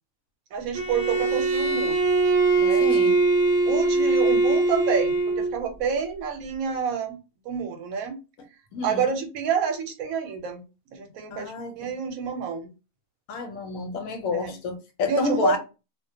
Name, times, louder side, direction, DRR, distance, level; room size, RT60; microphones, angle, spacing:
voice 1, 0.5-1.9 2.6-2.9 3.7-7.2 7.5-8.2 8.8-10.6 10.9-12.7 14.3-14.6 15.1-15.6, right 6 dB, 85° right, 1.1 m, -28 dB
Bowed string instrument, 0.7-5.6, right 3 dB, 65° right, 0.9 m, -22 dB
voice 2, 2.8-3.2 8.7-9.1 11.3-11.9 13.3-15.6, left 3 dB, 75° left, 1.0 m, -29 dB
2.4 x 2.1 x 2.6 m
omnidirectional pair, 1.5 m